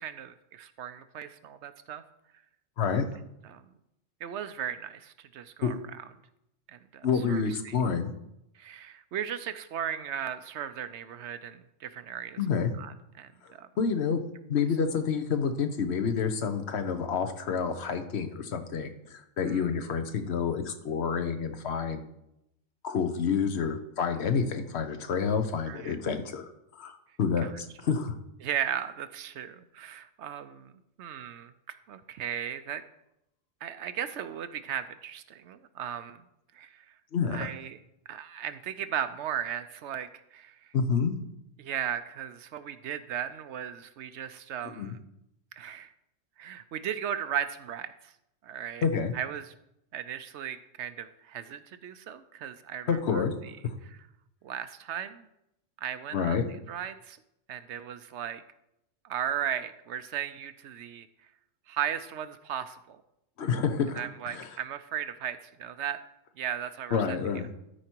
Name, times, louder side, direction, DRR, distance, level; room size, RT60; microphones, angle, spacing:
voice 1, 0.0-2.0 3.5-3.6 4.2-5.8 6.7-7.8 8.6-12.4 12.8-13.7 19.4-19.7 25.7-26.0 27.4-27.5 28.4-30.7 31.0-32.8 33.6-36.2 36.5-36.8 37.3-37.8 38.1-40.6 41.6-45.0 45.5-45.9 46.4-48.1 48.4-48.8 49.1-49.5 49.9-53.2 54.4-55.3 55.8-57.2 57.5-58.4 59.0-61.1 61.7-63.0 64.0-66.0 66.4-67.2, right 9 dB, 70° right, 12 dB, 0.8 m, -36 dB
voice 2, 7.0-8.1 12.4-12.7 13.8-14.2 14.5-22.1 22.8-28.1 37.1-37.5 40.7-41.2 44.6-44.9 48.8-49.1 52.9-53.3 53.6-53.8 56.1-56.4 63.4-64.6 66.9-67.5, left 6 dB, 60° left, 8 dB, 1.1 m, -28 dB
13.0 x 4.9 x 4.5 m, 0.83 s
omnidirectional pair, 1.3 m